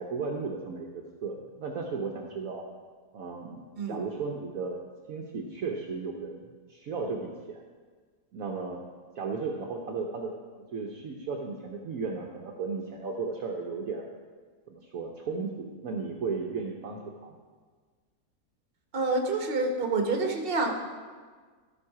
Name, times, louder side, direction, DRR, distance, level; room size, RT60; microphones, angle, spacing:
voice 1, 0.0-2.7 3.1-4.8 5.1-6.4 6.7-7.6 8.3-8.9 9.1-10.3 10.7-14.1 14.7-17.4, right 4 dB, 60° right, 0 dB, 1.1 m, -35 dB
voice 2, 18.9-20.7, right 3 dB, 40° right, 2 dB, 1.2 m, -27 dB
13.5 x 5.6 x 4.7 m, 1.5 s
omnidirectional pair, 1.8 m